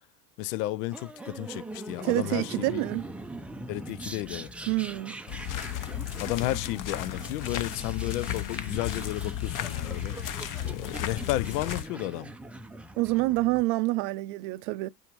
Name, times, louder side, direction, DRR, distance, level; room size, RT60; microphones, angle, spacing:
voice 1, 0.4-2.8 3.7-4.5 6.2-10.2 10.6-12.3, left 16 dB, 80° left, 0.6 m, -33 dB
sound 1, 0.9-13.6, right 1 dB, 5° right, 0.4 m, -42 dB
voice 2, 2.0-3.1 4.7-5.2 13.0-14.9, right 20 dB, 65° right, 0.6 m, -27 dB
sound 2, 5.3-11.8, left 11 dB, 40° left, 0.8 m, -34 dB
9.0 x 3.8 x 3.0 m
hypercardioid pair, 95°, 47 cm